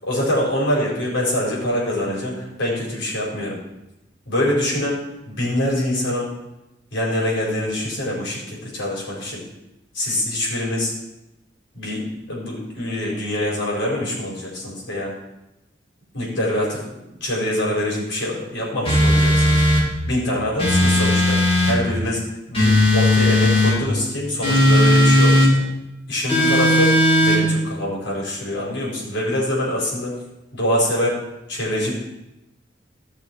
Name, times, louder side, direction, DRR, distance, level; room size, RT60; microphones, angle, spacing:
voice 1, 0.0-3.6 4.3-5.0 5.2-6.3 6.9-9.4 9.9-10.9 11.7-15.1 16.1-16.8 17.1-19.6 20.0-25.6 26.1-30.1 30.5-31.2 31.5-31.9, left 1 dB, 90° left, -4 dB, 4.6 m, -24 dB
sound 1, 18.8-19.9 20.6-21.8 22.5-23.8 24.4-25.5 26.3-27.4, left 1 dB, 30° left, 3.3 m, -16 dB
14.5 x 6.4 x 4.6 m, 0.93 s
head